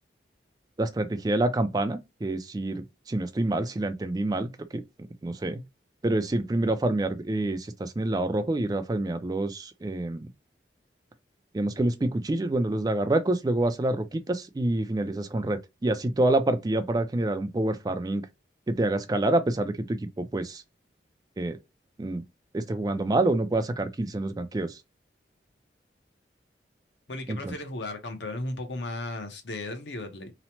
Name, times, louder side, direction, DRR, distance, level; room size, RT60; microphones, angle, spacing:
voice 1, 0.8-4.8 5.2-5.6 6.0-10.3 11.5-18.3 18.7-20.6 21.4-21.6 22.0-22.2 22.5-24.8 27.3-27.5, right 2 dB, 20° right, 0.3 m, -27 dB
voice 2, 27.1-30.3, left 2 dB, 75° left, 0.7 m, -35 dB
3.0 x 2.0 x 2.8 m
head